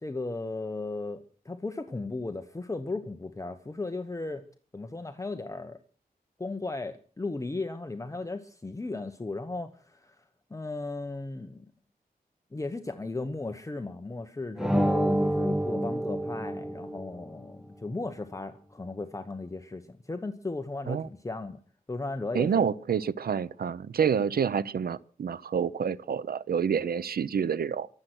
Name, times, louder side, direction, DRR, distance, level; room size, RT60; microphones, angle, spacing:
voice 1, 0.0-4.4 4.7-5.8 6.4-10.2 10.5-11.7 12.5-21.6 21.9-22.6, left 3 dB, 20° left, 1.0 m, -36 dB
sound 1, 14.6-17.3, right 1 dB, 5° right, 0.9 m, -28 dB
voice 2, 22.3-27.9, right 7 dB, 80° right, 0.6 m, -28 dB
23.5 x 7.8 x 6.2 m
wide cardioid pair, 115°, 16 cm